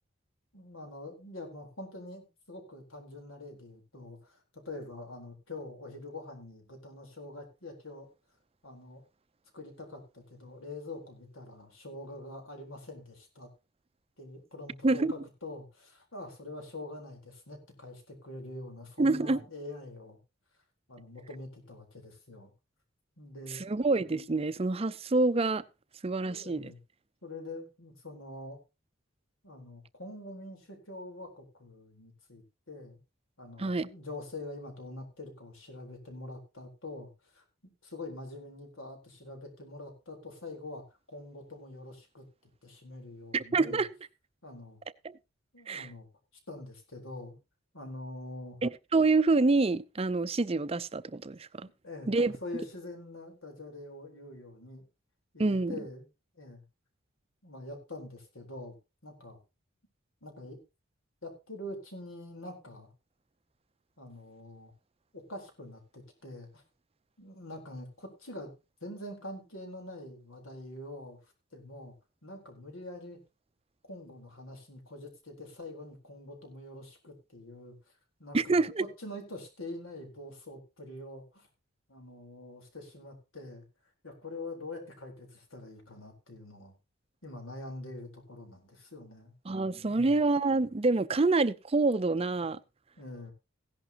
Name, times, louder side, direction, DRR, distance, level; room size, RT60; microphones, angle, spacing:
voice 1, 0.5-4.4 4.6-8.1 8.6-9.0 9.5-13.5 14.2-20.2 20.9-22.5 23.2-23.6 26.2-26.8 27.2-28.6 29.4-33.0 33.4-37.4 37.8-42.2 42.6-43.8 44.4-44.8 45.5-46.1 46.5-47.4 47.7-48.6 51.8-54.8 55.3-56.1 56.3-56.6 57.4-58.7 59.0-59.4 60.2-60.6 61.2-62.9 64.0-64.7 65.1-66.6 67.2-68.5 68.8-71.2 71.5-71.9 72.2-73.2 73.9-77.8 78.2-81.5 81.9-83.6 84.0-86.7 87.2-89.3 89.9-90.2 93.0-93.3, left 2 dB, 85° left, 4.1 m, -45 dB
voice 2, 19.0-19.4 23.5-25.6 26.0-26.7 33.6-33.9 43.3-43.9 45.0-45.2 45.7-45.9 48.6-51.7 52.1-52.3 55.4-55.8 78.3-78.8 89.5-92.6, right 3 dB, 30° right, 0.5 m, -27 dB
16.0 x 11.0 x 2.9 m
head